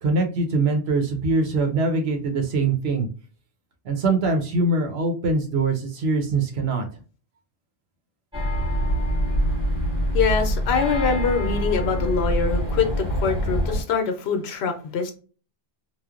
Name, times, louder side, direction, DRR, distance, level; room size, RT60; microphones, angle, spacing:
voice 1, 0.0-3.1 3.8-6.9, right 3 dB, 80° right, 4 dB, 0.9 m, -23 dB
sound 1, 8.3-13.8, equal, 5° right, 1.0 m, -24 dB
voice 2, 10.1-15.1, left 5 dB, 80° left, 6 dB, 0.9 m, -24 dB
3.1 x 2.1 x 2.3 m, 0.37 s
omnidirectional pair, 1.1 m